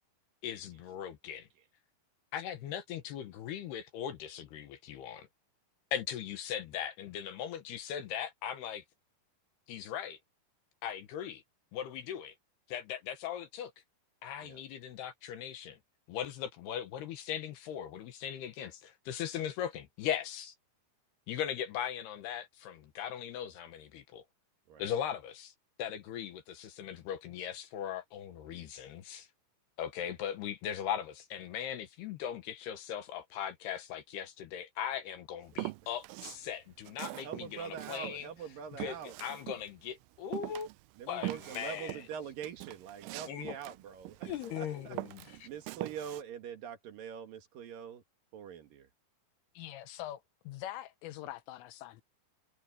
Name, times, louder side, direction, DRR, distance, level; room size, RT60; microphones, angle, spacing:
voice 1, 0.4-1.5 2.3-5.3 5.9-8.8 9.7-10.2 10.8-11.4 11.7-12.3 12.7-13.7 14.2-15.8 16.1-20.5 21.3-24.2 24.8-25.5 25.8-29.3 29.8-38.3 38.8-40.7 41.1-42.0 43.3-43.5 44.2-45.0 45.4-45.5, left 9 dB, 65° left, 2.9 m, -39 dB
Walk footsteps, 35.5-36.5 36.8-39.9 40.3-44.6 44.9-46.2, right 20 dB, 85° right, 3.0 m, -42 dB
voice 2, 37.2-39.2 41.0-45.0 45.4-48.0 48.3-48.9, right 8 dB, 55° right, 3.0 m, -44 dB
voice 3, 49.5-52.0, left 13 dB, 85° left, 3.5 m, -44 dB
omnidirectional pair, 5.7 m